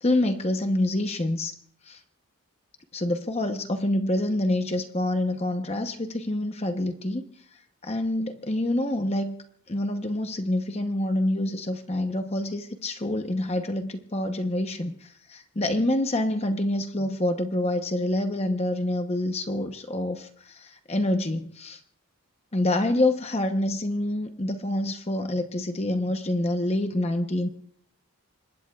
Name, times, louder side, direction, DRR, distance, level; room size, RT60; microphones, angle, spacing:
voice 1, 0.0-1.5 1.9-2.0 2.9-7.2 7.8-9.3 9.7-21.8 22.5-27.5, left 1 dB, 30° left, 6 dB, 0.8 m, -27 dB
26.0 x 21.0 x 2.4 m, 0.65 s
head